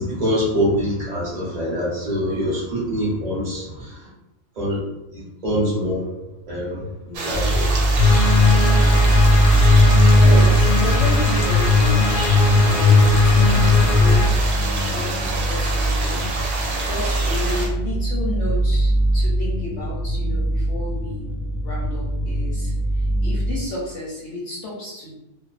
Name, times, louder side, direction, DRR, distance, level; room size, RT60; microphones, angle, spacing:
voice 1, 0.0-4.1 4.5-4.9 5.1-6.1 6.5-6.8 7.2-7.7, equal, 40° right, -7 dB, 0.7 m, -24 dB
voice 2, 7.1-7.5 8.0-8.1 8.9-21.3 21.6-25.1, left 1 dB, 65° left, -5 dB, 0.8 m, -33 dB
sound 1, 7.1-17.7, right 3 dB, 70° right, 0.9 m, -28 dB
sound 2, 7.3-23.6, right 1 dB, 35° left, 0.6 m, -22 dB
sound 3, 8.0-14.3, left 3 dB, 80° left, 1.1 m, -16 dB
2.6 x 2.1 x 2.4 m, 0.93 s
omnidirectional pair, 1.7 m